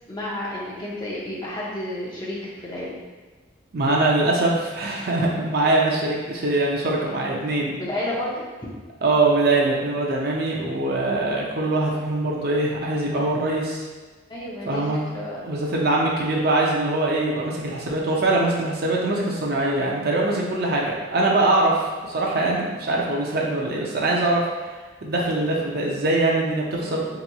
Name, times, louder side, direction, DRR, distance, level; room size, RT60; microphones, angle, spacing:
voice 1, 0.1-2.9 7.8-8.4 14.3-15.4 26.8-27.1, left 1 dB, 20° left, -6 dB, 0.6 m, -31 dB
voice 2, 3.7-7.7 9.0-13.8 14.7-15.0 15.4-24.5 25.0-27.2, right 2 dB, 50° right, -3 dB, 0.5 m, -22 dB
3.9 x 2.9 x 2.3 m, 1.3 s
head